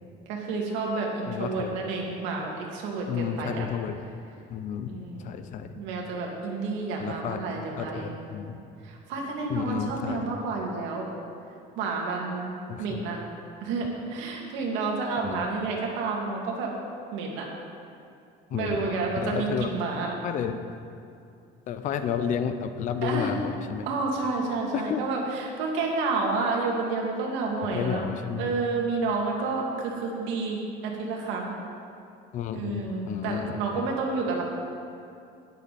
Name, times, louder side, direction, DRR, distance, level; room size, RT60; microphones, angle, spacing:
voice 1, 0.3-3.7 4.9-5.3 5.7-8.3 8.8-11.1 11.8-12.5 12.8-13.2 13.6-16.7 17.1-17.5 18.5-20.1 23.0-23.3 23.9-28.1 28.4-31.6 32.5-34.4, right 3 dB, 90° right, -1 dB, 2.3 m, -30 dB
voice 2, 1.3-1.8 3.1-4.0 4.5-4.9 5.2-5.7 7.0-7.4 7.8-8.6 9.5-10.2 12.7-13.0 15.2-15.4 18.5-18.8 19.1-19.7 20.2-20.6 21.7-23.9 24.7-25.0 27.7-28.5 32.3-33.8, left 8 dB, 40° left, 10 dB, 0.6 m, -31 dB
12.5 x 10.5 x 4.2 m, 2.6 s
cardioid pair, 180°, 19 cm